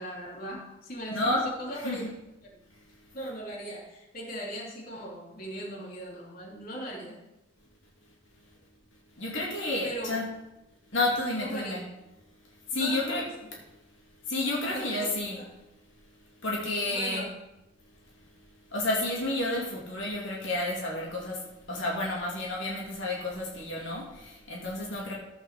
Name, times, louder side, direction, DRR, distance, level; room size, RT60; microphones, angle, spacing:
voice 1, 0.0-1.3 1.6-2.0 3.1-7.2 9.8-10.1 11.4-11.8 12.7-13.2 14.6-15.0 15.4-15.5 16.9-17.3, equal, 45° left, -3 dB, 2.8 m, -38 dB
voice 2, 1.1-1.4 1.8-2.1 9.2-10.2 10.9-11.8 12.7-13.3 14.3-15.4 16.4-17.2 18.7-21.4 21.7-25.1, left 2 dB, 65° left, -3 dB, 2.7 m, -30 dB
14.5 x 5.6 x 6.7 m, 0.97 s
head